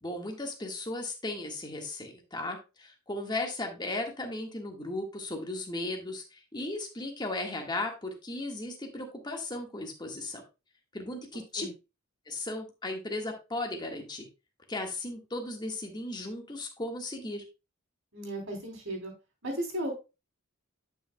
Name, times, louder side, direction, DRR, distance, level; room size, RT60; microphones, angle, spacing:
voice 1, 0.0-10.4 10.9-11.7 12.3-14.3 14.7-17.4, left 2 dB, 20° left, 2 dB, 1.5 m, -36 dB
voice 2, 18.1-19.1 19.4-19.9, right 1 dB, 65° right, 2 dB, 3.3 m, -35 dB
10.5 x 6.2 x 2.2 m, 0.28 s
head